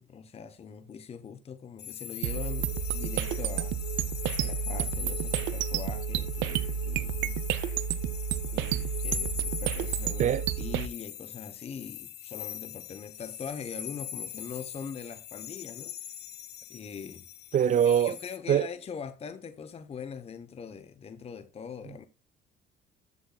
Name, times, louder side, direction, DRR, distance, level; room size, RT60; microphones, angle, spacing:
voice 1, 0.0-3.8 4.4-7.4 8.5-16.1 16.7-17.2 17.8-22.1, left 6 dB, 35° left, 0.9 m, -42 dB
sound 1, 1.8-18.4, left 10 dB, 60° left, 1.0 m, -41 dB
sound 2, 2.2-10.9, right 9 dB, 80° right, 0.8 m, -31 dB
voice 2, 17.5-18.1 18.5-18.7, right 9 dB, 40° right, 0.5 m, -23 dB
13.5 x 8.0 x 2.3 m
cardioid pair, 95°, 19 cm